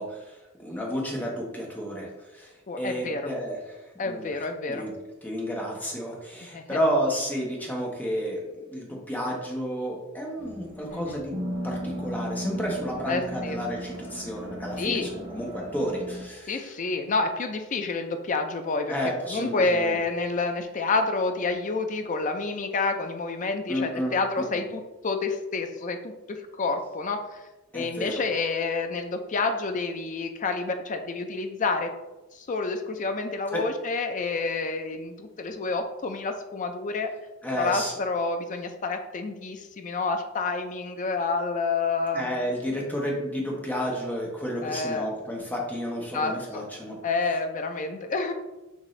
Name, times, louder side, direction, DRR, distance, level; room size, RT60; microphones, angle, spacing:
voice 1, 0.0-4.9 5.2-8.4 8.7-11.4 11.6-16.7 18.9-19.9 23.7-24.6 27.7-28.2 33.5-33.6 37.4-37.9 42.1-47.0, equal, 10° left, -2 dB, 0.9 m, -31 dB
voice 2, 2.7-3.3 4.0-4.8 6.5-6.8 10.9-11.2 13.1-13.6 14.8-15.1 16.5-18.9 19.3-27.5 27.7-31.9 32.3-37.1 37.5-42.3 44.6-45.1 46.1-46.6 47.0-48.3, left 3 dB, 35° left, 7 dB, 0.4 m, -29 dB
sound 1, 10.4-16.2, equal, 35° right, 1.3 m, -36 dB
6.3 x 2.6 x 3.2 m, 1.1 s
head